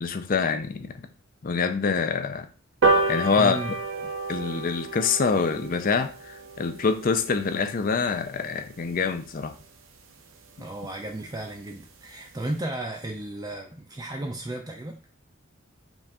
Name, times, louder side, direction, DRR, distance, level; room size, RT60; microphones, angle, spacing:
voice 1, 0.0-1.1 1.4-2.5 3.1-3.6 4.3-9.5, left 5 dB, 45° left, 8 dB, 0.5 m, -25 dB
sound 1, 2.8-9.6 10.0-10.1 10.4-10.5 10.8-10.9 11.2-11.3 11.6-11.8 12.3-12.4, right 2 dB, 80° right, 0.7 m, -30 dB
voice 2, 3.3-3.7 10.6-15.0, right 1 dB, 20° right, 2 dB, 0.4 m, -34 dB
5.1 x 2.5 x 3.5 m, 0.38 s
head